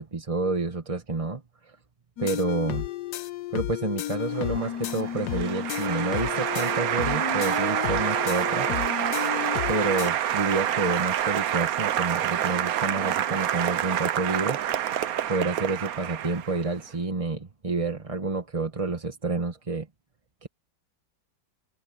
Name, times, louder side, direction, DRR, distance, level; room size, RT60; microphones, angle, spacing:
voice 1, 0.0-1.8 2.2-2.9 3.5-8.7 9.7-14.6 15.3-19.9 20.4-20.5, right 3 dB, 20° right, 1.2 m, -29 dB
sound 1, 2.2-10.1, left 12 dB, 70° left, 1.2 m, -32 dB
Applause, 4.3-16.8, right 11 dB, 60° right, 1.1 m, -27 dB
open air
omnidirectional pair, 2.0 m